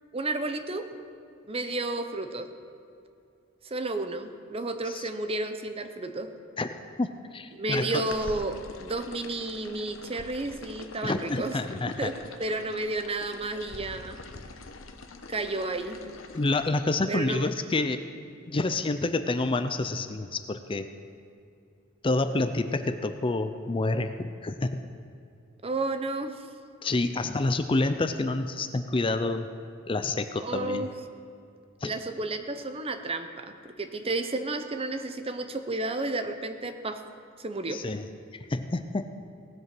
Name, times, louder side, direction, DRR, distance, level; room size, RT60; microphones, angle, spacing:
voice 1, 0.1-0.9 1.5-2.5 3.6-6.3 7.5-11.6 12.0-12.1 12.4-14.2 15.3-16.0 17.1-17.4 25.6-26.4 30.4-30.9 31.8-37.0 37.4-37.8, right 2 dB, 30° right, 8 dB, 0.8 m, -32 dB
voice 2, 7.0-8.0 11.0-12.1 16.3-18.0 18.5-20.9 22.0-24.8 26.8-29.5 29.9-30.9 31.8-31.9 37.7-38.1 38.3-39.1, left 2 dB, 25° left, 9 dB, 0.5 m, -28 dB
sound 1, 8.1-16.7, left 3 dB, 85° left, 1.0 m, -45 dB
18.0 x 7.9 x 6.1 m, 2.5 s
head